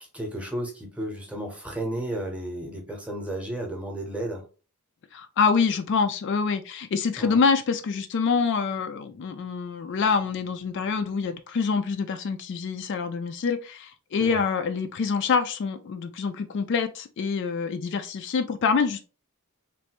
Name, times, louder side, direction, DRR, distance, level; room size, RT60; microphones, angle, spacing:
voice 1, 0.1-4.4 7.2-7.4 14.2-14.4, right 1 dB, 5° right, 0.8 m, -33 dB
voice 2, 5.1-19.0, left 5 dB, 55° left, 0.3 m, -26 dB
3.2 x 2.5 x 2.9 m
head